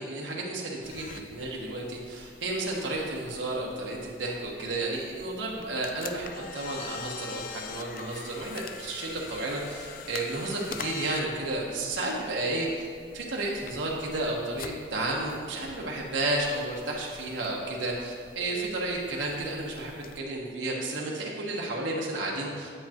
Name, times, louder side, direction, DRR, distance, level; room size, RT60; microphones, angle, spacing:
voice 1, 0.0-12.9 13.1-22.7, right 2 dB, 90° right, -3 dB, 1.1 m, -32 dB
sound 1, 0.8-20.2, left 6 dB, 50° left, 0.4 m, -45 dB
8.8 x 8.4 x 2.9 m, 2.2 s
head